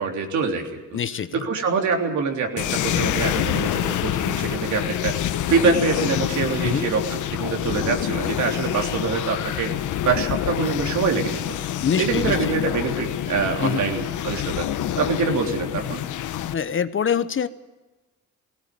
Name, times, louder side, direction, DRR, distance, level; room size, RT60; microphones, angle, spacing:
voice 1, 0.0-1.0 1.3-5.2 5.5-9.7 10.1-11.6 12.0-14.7 15.0-16.0, right 5 dB, 70° right, 3 dB, 3.5 m, -25 dB
voice 2, 0.9-1.5 6.6-6.9 11.8-12.4 13.6-13.9 16.5-17.5, left 7 dB, 40° left, 13 dB, 1.0 m, -24 dB
sound 1, 2.6-16.5, left 11 dB, 75° left, 1.1 m, -26 dB
18.0 x 17.5 x 9.5 m, 1.1 s
cardioid pair, 90°, 30 cm